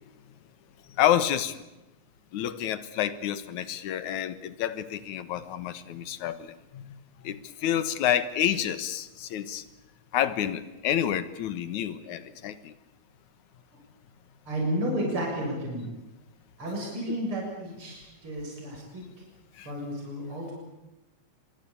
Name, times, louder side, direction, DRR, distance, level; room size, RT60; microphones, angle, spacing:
voice 1, 0.9-1.6 2.3-9.6 10.1-12.7 17.1-17.2 19.5-19.7, left 10 dB, 85° left, 14 dB, 2.7 m, -29 dB
voice 2, 14.5-15.9 16.6-19.1 19.6-20.5, equal, 45° right, -1 dB, 7.8 m, -32 dB
24.0 x 24.0 x 8.6 m, 1.0 s
omnidirectional pair, 3.3 m